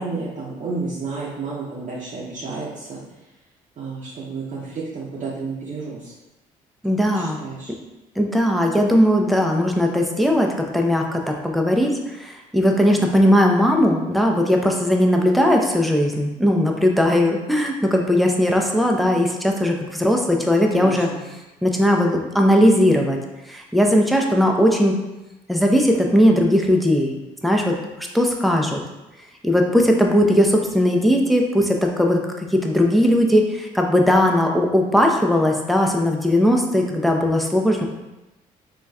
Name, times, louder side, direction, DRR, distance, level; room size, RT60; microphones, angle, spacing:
voice 1, 0.0-3.0 3.8-6.1 7.1-7.7 20.7-21.2, right 4 dB, 40° right, -6 dB, 0.7 m, -31 dB
voice 2, 6.8-7.4 8.2-21.1 21.6-23.2 23.5-24.9 25.5-27.1 27.4-28.8 29.4-37.8, equal, ahead, 1 dB, 0.5 m, -18 dB
3.9 x 2.3 x 2.3 m, 1.0 s
hypercardioid pair, 55°, 18 cm